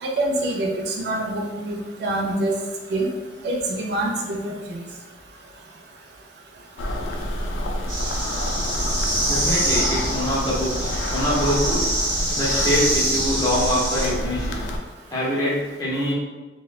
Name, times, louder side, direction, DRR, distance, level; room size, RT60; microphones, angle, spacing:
voice 1, 0.0-2.5 2.9-3.1 3.4-4.8, right 1 dB, 60° right, 0 dB, 0.4 m, -25 dB
sound 1, 6.8-14.8, left 1 dB, 90° left, 0.3 m, -28 dB
sound 2, 7.9-14.1, right 1 dB, 25° right, 0.8 m, -25 dB
voice 2, 9.3-11.9 12.3-14.5 15.1-16.1, equal, 20° left, -7 dB, 0.6 m, -24 dB
2.9 x 2.1 x 2.3 m, 1.2 s
head